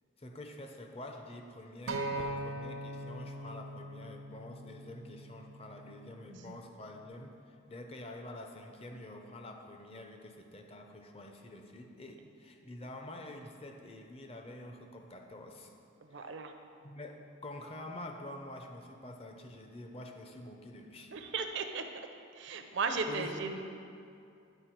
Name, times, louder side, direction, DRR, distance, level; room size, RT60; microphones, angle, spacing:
voice 1, 0.2-15.7 16.1-16.4 16.8-21.1 22.5-22.7 23.1-23.6, left 1 dB, 30° left, 4 dB, 0.6 m, -47 dB
Acoustic guitar, 1.9-6.1 7.0-7.1, right 1 dB, 90° right, 0.8 m, -41 dB
voice 2, 16.0-16.5 21.1-21.9 22.3-23.6, right 4 dB, 60° right, 6 dB, 0.5 m, -36 dB
9.9 x 4.3 x 4.5 m, 2.5 s
head